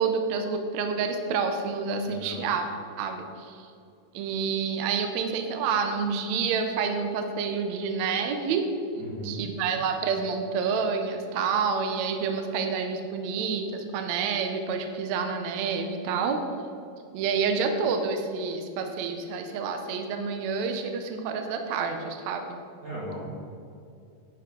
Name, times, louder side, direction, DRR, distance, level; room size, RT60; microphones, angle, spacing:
voice 1, 0.0-2.7 3.0-3.7 4.1-8.7 9.2-16.4 17.1-22.6, right 5 dB, 75° right, 6 dB, 1.7 m, -28 dB
voice 2, 2.0-2.4 9.0-9.4 22.8-23.3, right 1 dB, 30° right, -9 dB, 2.0 m, -37 dB
10.5 x 9.7 x 3.8 m, 2.5 s
omnidirectional pair, 4.0 m